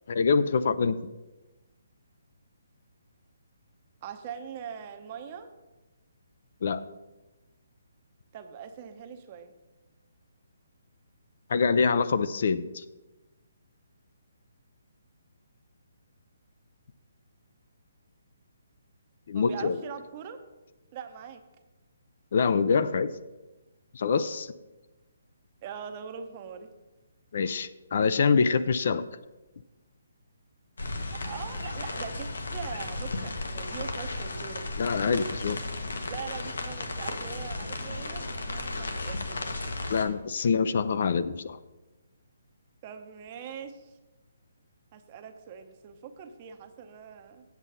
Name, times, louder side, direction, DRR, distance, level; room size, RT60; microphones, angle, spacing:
voice 1, 0.1-1.0 6.6-6.8 11.5-12.8 19.3-19.8 22.3-23.2 23.9-24.5 27.3-29.1 34.8-35.6 39.9-41.6, left 5 dB, 50° left, 13 dB, 0.4 m, -25 dB
voice 2, 4.0-5.5 8.3-9.5 19.3-20.4 20.9-21.4 25.6-26.7 31.1-34.7 36.1-39.6 42.8-43.9 44.9-47.4, right 7 dB, 25° right, 7 dB, 0.7 m, -42 dB
sound 1, 30.8-40.1, left 2 dB, 90° left, 1.3 m, -34 dB
8.2 x 7.4 x 5.4 m, 1.1 s
hypercardioid pair, 165°, 0 cm